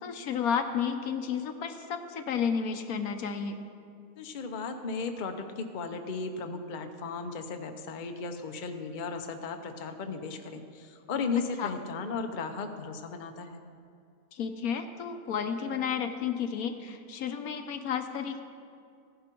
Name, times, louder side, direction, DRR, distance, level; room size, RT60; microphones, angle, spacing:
voice 1, 0.0-3.6 11.6-11.7 14.3-18.4, left 7 dB, 70° left, 7 dB, 1.2 m, -32 dB
voice 2, 4.2-13.6, left 4 dB, 40° left, 6 dB, 0.7 m, -36 dB
15.5 x 10.5 x 4.5 m, 2.3 s
omnidirectional pair, 1.6 m